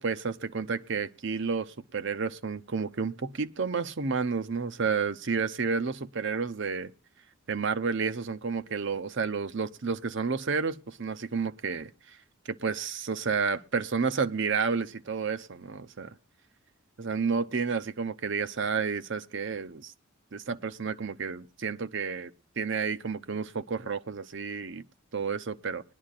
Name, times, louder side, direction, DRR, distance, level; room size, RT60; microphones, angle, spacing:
voice 1, 0.0-6.9 7.5-12.2 12.5-16.1 17.0-19.9 20.3-22.3 22.6-24.8 25.1-25.8, right 5 dB, 60° right, 0.7 m, -31 dB
20.5 x 11.5 x 2.5 m
head